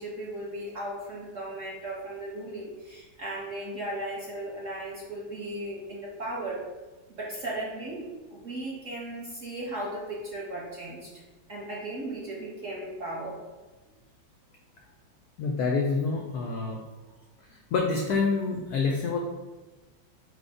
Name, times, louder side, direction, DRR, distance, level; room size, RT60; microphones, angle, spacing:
voice 1, 0.0-6.6 7.1-11.1 11.5-13.4, right 1 dB, 60° right, -5 dB, 0.8 m, -36 dB
voice 2, 15.4-16.8 17.5-19.2, left 4 dB, 90° left, 1 dB, 0.8 m, -27 dB
5.0 x 2.1 x 4.7 m, 1.2 s
omnidirectional pair, 2.2 m